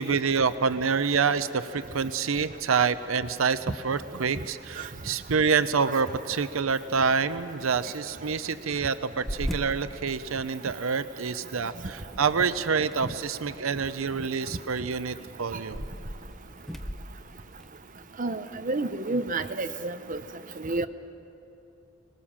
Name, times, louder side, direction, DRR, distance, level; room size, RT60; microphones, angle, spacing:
voice 1, 0.0-15.8, right 5 dB, 90° right, 12 dB, 0.7 m, -27 dB
sound 1, 3.5-18.2, equal, ahead, 0.7 m, -43 dB
voice 2, 18.2-20.2 20.6-20.9, right 2 dB, 40° right, 8 dB, 0.8 m, -29 dB
24.5 x 20.0 x 7.3 m, 2.9 s
head